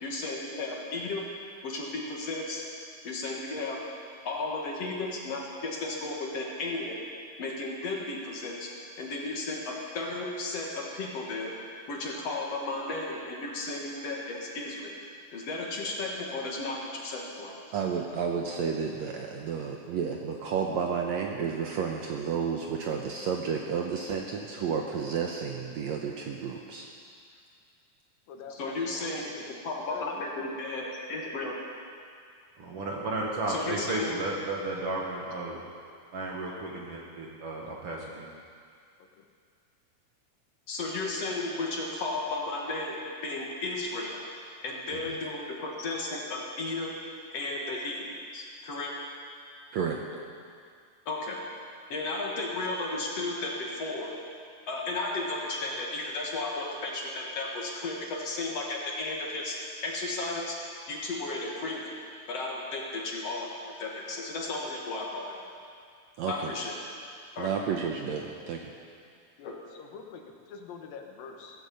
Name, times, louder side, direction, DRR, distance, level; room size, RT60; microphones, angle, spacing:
voice 1, 0.0-1.3 1.6-2.6 3.0-3.9 4.2-7.1 7.4-8.7 9.0-11.5 11.9-14.9 15.3-17.6 28.5-29.3 29.6-31.5 33.5-34.2 40.7-44.3 44.6-47.0 47.3-49.0 51.1-51.4 51.9-54.1 54.7-60.6 60.9-61.9 62.3-65.5 66.3-66.7 67.4-67.5 69.4-69.5, left 2 dB, 50° left, -1 dB, 2.6 m, -34 dB
voice 2, 17.7-26.9 45.1-45.2 49.7-50.0 66.2-66.5 67.4-68.7, right 6 dB, 70° right, 1 dB, 1.8 m, -31 dB
voice 3, 28.3-29.4 29.9-30.6 31.1-31.4 33.4-33.5 33.9-34.3 39.0-39.3 69.4-71.6, left 5 dB, 80° left, 3 dB, 3.0 m, -45 dB
voice 4, 32.6-35.6 36.1-38.3, right 2 dB, 50° right, -2 dB, 2.0 m, -33 dB
16.5 x 15.0 x 5.3 m, 2.2 s
omnidirectional pair, 4.0 m